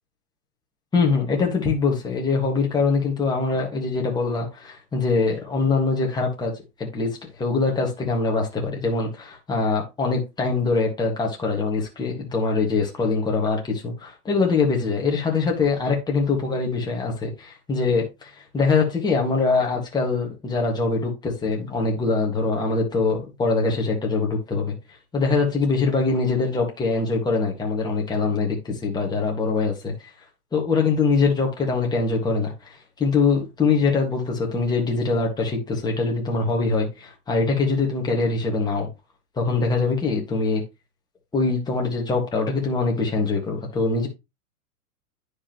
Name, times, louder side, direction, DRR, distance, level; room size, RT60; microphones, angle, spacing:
voice 1, 0.9-6.5 6.8-24.7 25.1-29.9 30.5-38.9 39.4-40.6 41.3-44.1, left 4 dB, 10° left, 1.7 m, -23 dB
9.7 x 5.0 x 3.0 m
supercardioid pair, 140°, 44 cm